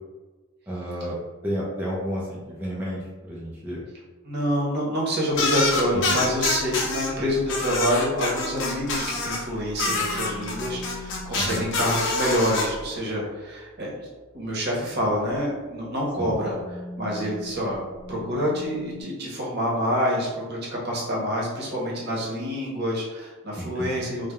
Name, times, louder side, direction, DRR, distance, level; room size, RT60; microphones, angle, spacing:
voice 1, 0.7-1.2 1.4-3.8 6.0-6.2 11.4-11.7 16.2-16.4 23.6-24.1, equal, 10° right, -6 dB, 0.4 m, -31 dB
voice 2, 4.2-14.1 14.3-16.5 17.0-17.8 18.1-24.3, equal, 55° right, -4 dB, 0.8 m, -27 dB
sound 1, 5.3-7.1 7.5-9.4 9.8-12.6, left 3 dB, 65° left, 0.5 m, -26 dB
sound 2, 9.8-11.9 14.9-15.3 16.2-19.0, left 2 dB, 15° left, 0.8 m, -41 dB
3.1 x 2.0 x 2.3 m, 1.3 s
head